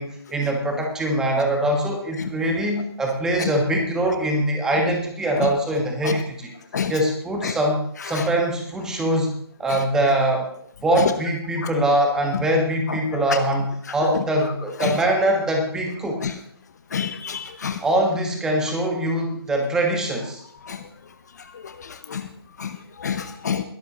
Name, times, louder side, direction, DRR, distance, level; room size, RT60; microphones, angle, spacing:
voice 1, 0.0-6.5 6.9-10.5 10.8-16.3 17.8-20.4, right 1 dB, 5° right, 1 dB, 1.5 m, -23 dB
voice 2, 16.9-17.8 22.1-22.2 22.6-22.7 23.0-23.6, left 7 dB, 40° left, 10 dB, 0.8 m, -26 dB
21.0 x 12.5 x 3.0 m, 0.67 s
figure-of-eight pair, 160°, 14 cm